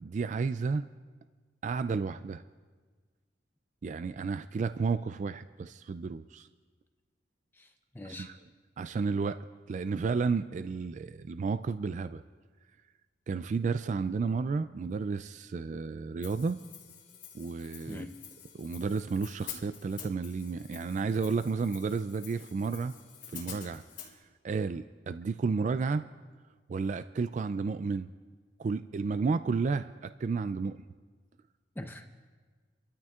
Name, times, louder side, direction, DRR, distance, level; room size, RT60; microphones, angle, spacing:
voice 1, 0.0-0.8 1.6-2.4 3.8-6.5 8.0-8.4 8.8-9.4 9.7-12.2 13.3-16.6 17.3-18.0 18.5-22.9 23.3-23.8 24.4-26.0 26.7-28.1 28.6-30.9, right 4 dB, 45° right, 12 dB, 0.3 m, -32 dB
voice 2, 7.5-8.3 17.9-18.2 31.7-32.0, left 1 dB, 10° left, 5 dB, 0.6 m, -43 dB
Hi-hat, 16.2-24.1, left 9 dB, 75° left, 3.1 m, -48 dB
29.5 x 13.5 x 2.4 m, 1.5 s
head